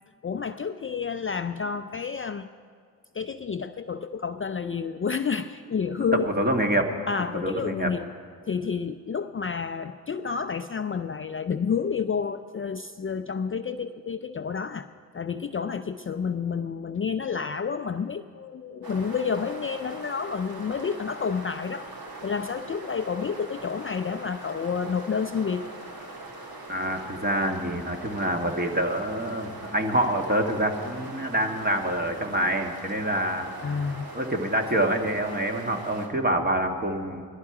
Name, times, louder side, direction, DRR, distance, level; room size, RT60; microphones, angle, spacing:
voice 1, 0.2-2.5 3.1-6.3 7.1-8.1 8.5-14.9 15.1-21.9 22.2-25.6 33.6-34.1, left 6 dB, 30° left, 9 dB, 0.5 m, -30 dB
voice 2, 6.1-6.9 7.4-7.9 26.7-33.5 34.1-37.2, right 1 dB, 25° right, 3 dB, 1.7 m, -26 dB
sound 1, 18.8-36.1, right 2 dB, 60° right, 2.2 m, -41 dB
16.5 x 12.0 x 4.8 m, 2.2 s
cardioid pair, 50°, 40 cm